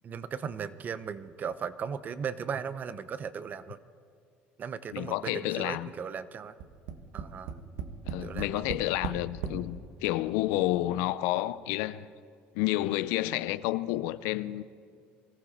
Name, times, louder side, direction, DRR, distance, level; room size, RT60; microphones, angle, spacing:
voice 1, 0.0-3.8 4.6-6.5 7.1-7.6 8.2-8.6, right 7 dB, 40° right, 0.7 m, -37 dB
voice 2, 4.9-5.9 8.1-12.0 12.5-14.6, left 16 dB, 85° left, 0.5 m, -30 dB
Tap, 6.6-9.6 10.4-10.5 10.8-10.9, right 7 dB, 75° right, 1.3 m, -37 dB
24.0 x 14.5 x 4.1 m
supercardioid pair, 105°, 4 cm